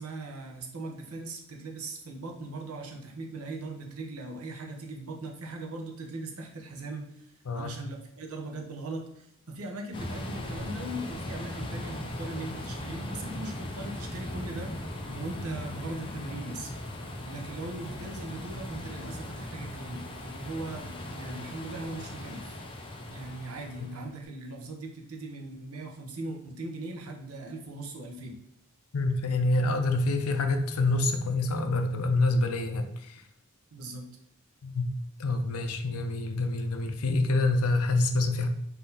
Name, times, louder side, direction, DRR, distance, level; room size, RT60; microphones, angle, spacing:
voice 1, 0.0-14.7 15.1-16.7 17.3-22.6 23.1-28.4 33.7-34.1, right 2 dB, 75° right, 1 dB, 0.8 m, -39 dB
sound 1, 9.9-24.2, left 1 dB, 25° left, 0.5 m, -38 dB
voice 2, 28.9-33.2 34.6-34.9 35.2-38.5, left 2 dB, 80° left, 7 dB, 0.5 m, -27 dB
4.0 x 2.8 x 3.9 m, 0.76 s
head